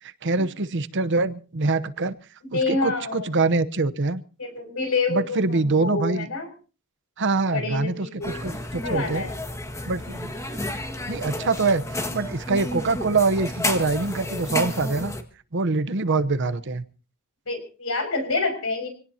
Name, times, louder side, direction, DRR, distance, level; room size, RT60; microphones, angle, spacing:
voice 1, 0.0-2.2 2.5-4.2 5.1-6.3 7.2-9.3 9.9-10.3 11.1-15.1 15.5-16.8, right 3 dB, 55° right, 13 dB, 0.9 m, -24 dB
voice 2, 2.5-3.3 4.4-6.5 7.5-8.3 8.8-9.3 17.5-18.9, left 3 dB, 70° left, 6 dB, 6.1 m, -27 dB
sound 1, 8.2-15.2, left 1 dB, 15° left, 1.7 m, -31 dB
26.0 x 18.0 x 2.8 m, 0.37 s
head